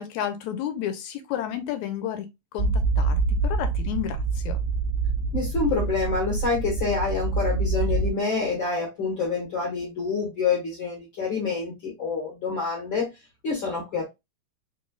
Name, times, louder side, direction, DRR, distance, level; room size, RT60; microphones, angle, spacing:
voice 1, 0.0-4.6, left 10 dB, 90° left, 2.0 m, -32 dB
sound 1, 2.6-8.1, right 3 dB, 85° right, 2.0 m, -26 dB
voice 2, 5.3-13.1 13.4-14.1, left 4 dB, 55° left, 1.6 m, -27 dB
4.4 x 3.2 x 2.2 m
omnidirectional pair, 3.3 m